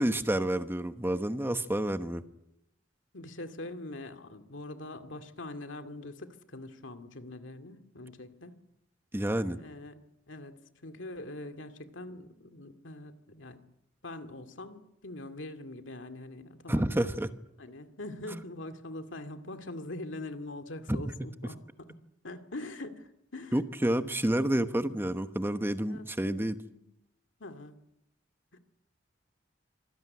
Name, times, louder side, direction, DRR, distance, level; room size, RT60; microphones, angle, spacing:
voice 1, 0.0-2.2 9.1-9.6 16.7-17.3 18.3-18.4 20.9-21.0 23.5-26.6, right 1 dB, 10° right, 9 dB, 1.1 m, -29 dB
voice 2, 3.1-8.6 9.5-10.0 10.3-13.6 14.0-17.1 17.6-23.6 25.6-26.1 26.7-26.8 27.4-27.7 28.5-28.6, left 2 dB, 75° left, 7 dB, 2.3 m, -43 dB
26.0 x 17.0 x 9.7 m, 0.84 s
head